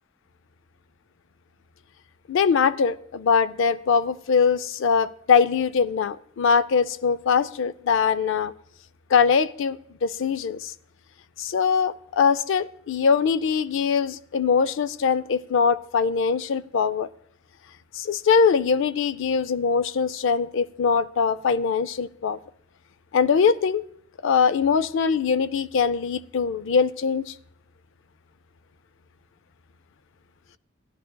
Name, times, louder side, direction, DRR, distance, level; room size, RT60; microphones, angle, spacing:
voice 1, 2.3-8.5 9.1-10.7 11.4-17.1 17.9-22.4 23.1-23.9 24.2-27.3, left 6 dB, 65° left, 0.4 m, -22 dB
17.0 x 11.0 x 2.2 m
head